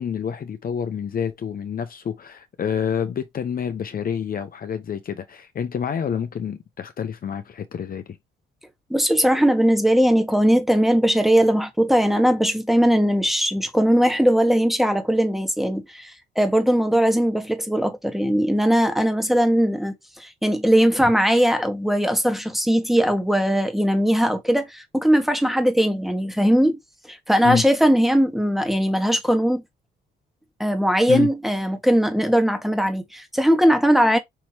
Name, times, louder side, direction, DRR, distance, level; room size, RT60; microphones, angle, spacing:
voice 1, 0.0-8.2 27.4-27.6 31.1-31.3, left 7 dB, 50° left, 0.8 m, -28 dB
voice 2, 8.9-26.8 27.1-29.6 30.6-34.2, equal, ahead, 1.4 m, -19 dB
5.8 x 3.1 x 2.9 m
cardioid pair, 90°, 20 cm